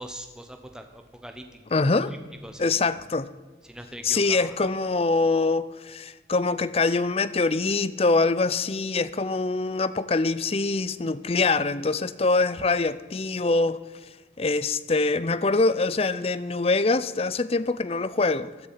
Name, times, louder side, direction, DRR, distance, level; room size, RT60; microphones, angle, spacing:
voice 1, 0.0-1.6 2.4-2.8 3.6-4.7, right 1 dB, 5° right, 0.9 m, -42 dB
voice 2, 1.7-2.1 2.6-3.3 4.0-13.8 14.4-18.7, left 3 dB, 35° left, 0.5 m, -24 dB
16.0 x 11.0 x 5.7 m
head